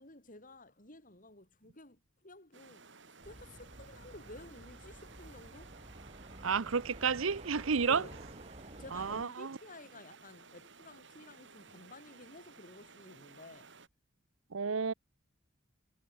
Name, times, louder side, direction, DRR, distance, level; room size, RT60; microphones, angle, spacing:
voice 1, 0.0-5.8 7.8-8.2 8.7-13.7, left 2 dB, 40° left, 8.0 m, -53 dB
sound 1, 2.5-13.9, right 4 dB, 65° right, 6.7 m, -56 dB
sound 2, 3.2-9.3, right 1 dB, 35° right, 3.4 m, -51 dB
voice 2, 6.4-8.0 8.9-9.6 14.5-14.9, right 5 dB, 80° right, 0.8 m, -31 dB
head